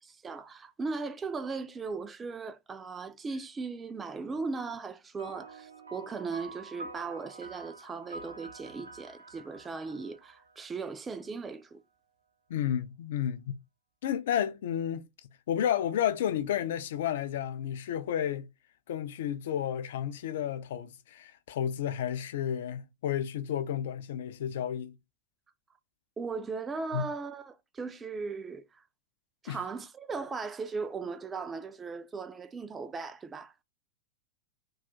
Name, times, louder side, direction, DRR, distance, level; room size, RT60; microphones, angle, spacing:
voice 1, 0.1-11.8 26.2-28.8 29.4-33.5, right 4 dB, 15° right, 0.3 m, -38 dB
sound 1, 5.2-11.0, right 3 dB, 80° right, 0.6 m, -47 dB
voice 2, 12.5-13.5 14.0-15.0 15.5-18.5 18.9-25.0 26.9-27.1 29.5-29.6, left 10 dB, 55° left, 0.4 m, -31 dB
2.3 x 2.3 x 3.9 m
figure-of-eight pair, 90°, 0 cm